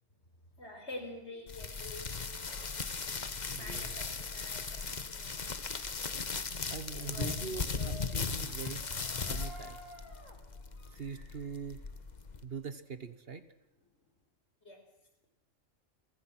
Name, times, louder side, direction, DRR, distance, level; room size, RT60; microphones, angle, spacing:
voice 1, 0.5-2.8 3.5-5.7 6.9-8.3 14.6-14.9, left 1 dB, 55° left, 5 dB, 4.9 m, -48 dB
sound 1, 1.5-12.4, left 4 dB, 35° left, 1.2 m, -38 dB
voice 2, 3.5-4.0 6.7-8.9 9.3-9.8 10.9-11.8 12.4-13.4, right 5 dB, 50° right, 12 dB, 1.3 m, -42 dB
sound 2, 8.2-12.8 13.2-14.2, left 1 dB, 75° left, 4.1 m, -55 dB
30.0 x 24.0 x 6.1 m, 0.88 s
omnidirectional pair, 1.4 m